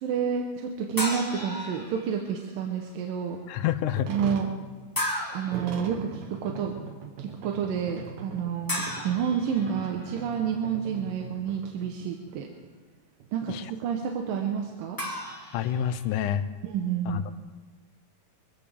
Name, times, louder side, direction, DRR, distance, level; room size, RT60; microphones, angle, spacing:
voice 1, 0.0-3.4 4.1-4.5 5.3-6.8 7.2-12.5 13.3-15.0 16.6-17.3, right 7 dB, 80° right, 2 dB, 2.7 m, -29 dB
sound 1, 1.0-2.3 4.9-5.7 8.7-10.2 15.0-16.2, left 1 dB, 20° left, 0.6 m, -34 dB
voice 2, 3.5-4.1 13.5-13.7 15.5-16.4 17.1-17.3, left 10 dB, 75° left, 12 dB, 2.1 m, -28 dB
sound 2, 4.0-12.4 12.6-12.7 13.2-13.3 13.7-15.3, right 5 dB, 65° right, 2.2 m, -42 dB
23.5 x 15.5 x 3.5 m, 1.4 s
omnidirectional pair, 3.9 m